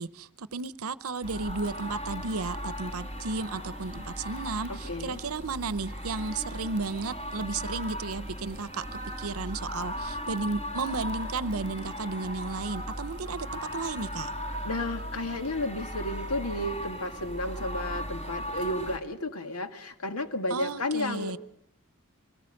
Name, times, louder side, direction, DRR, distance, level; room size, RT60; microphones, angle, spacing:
voice 1, 0.0-14.3 20.5-21.4, right 3 dB, 70° right, 16 dB, 0.8 m, -34 dB
sound 1, 1.2-19.0, equal, 30° left, 4.4 m, -37 dB
voice 2, 4.7-5.2 14.6-21.4, left 1 dB, 80° left, 8 dB, 1.7 m, -32 dB
24.0 x 19.0 x 6.5 m, 0.70 s
head